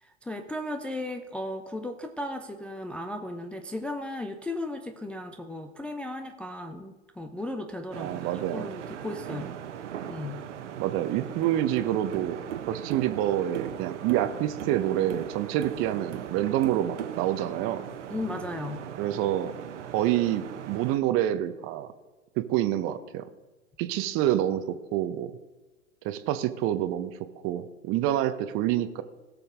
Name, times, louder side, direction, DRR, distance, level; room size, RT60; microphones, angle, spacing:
voice 1, 0.0-8.2 8.5-9.6 10.1-10.4 18.1-18.9, left 1 dB, 5° left, 4 dB, 0.3 m, -36 dB
sound 1, 7.9-21.0, right 9 dB, 65° right, 1.1 m, -38 dB
voice 2, 8.0-8.7 10.8-17.8 19.0-19.5 19.9-21.9 22.4-23.2 23.8-24.6 24.9-25.3 26.0-27.1 27.4-29.0, right 12 dB, 35° right, 11 dB, 0.8 m, -27 dB
18.0 x 7.0 x 3.5 m, 1.2 s
figure-of-eight pair, 90°, 38 cm